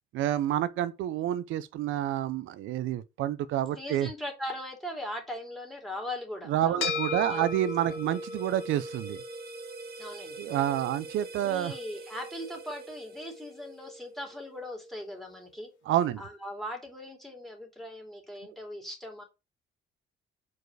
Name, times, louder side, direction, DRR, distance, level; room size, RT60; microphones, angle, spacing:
voice 1, 0.1-4.1 6.5-9.2 10.4-11.7 15.9-16.2, right 12 dB, 85° right, 0.6 m, -28 dB
voice 2, 3.8-7.5 8.1-8.2 10.0-10.4 11.4-15.7 16.2-19.2, left 1 dB, ahead, 2.9 m, -40 dB
sound 1, 6.8-15.4, left 3 dB, 80° left, 2.5 m, -39 dB
sound 2, 6.9-14.0, right 6 dB, 50° right, 1.1 m, -48 dB
4.8 x 4.7 x 6.1 m
cardioid pair, 90°, 20 cm